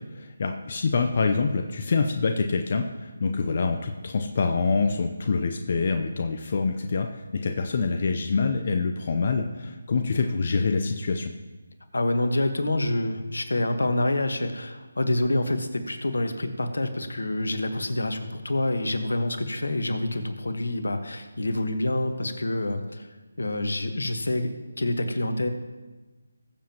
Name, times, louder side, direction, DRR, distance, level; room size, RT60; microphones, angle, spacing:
voice 1, 0.0-11.3, left 4 dB, 45° left, 4 dB, 0.7 m, -26 dB
voice 2, 11.9-23.1 23.4-25.5, left 1 dB, 80° left, 7 dB, 1.3 m, -27 dB
21.0 x 7.4 x 3.0 m, 1.2 s
figure-of-eight pair, 160°, 0 cm